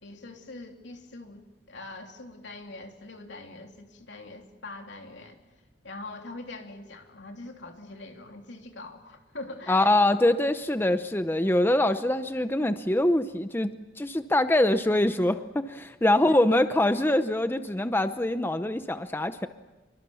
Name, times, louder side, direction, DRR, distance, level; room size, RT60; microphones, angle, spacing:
voice 1, 0.0-5.4 5.8-10.1 16.1-16.6, left 2 dB, 75° left, 3 dB, 3.2 m, -43 dB
voice 2, 9.7-19.5, left 1 dB, 10° left, 10 dB, 0.7 m, -24 dB
27.0 x 23.5 x 7.1 m, 1.2 s
head